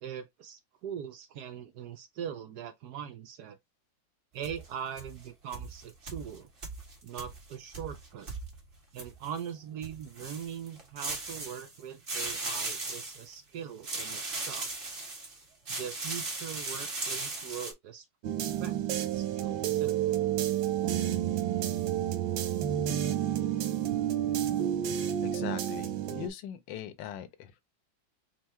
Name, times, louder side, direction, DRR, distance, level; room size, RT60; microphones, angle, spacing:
voice 1, 0.0-3.6 4.3-6.5 7.0-8.3 8.9-14.7 15.7-18.1 18.4-20.0, right 8 dB, 70° right, 1.0 m, -41 dB
sound 1, 4.4-5.3 5.5-9.4 9.8-11.8 12.1-13.3 13.8-15.4 15.7-17.7, right 3 dB, 30° right, 1.4 m, -38 dB
sound 2, 18.2-26.3, right 11 dB, 90° right, 1.6 m, -30 dB
voice 2, 25.2-27.6, left 10 dB, 75° left, 1.4 m, -41 dB
4.6 x 2.2 x 4.2 m
omnidirectional pair, 2.1 m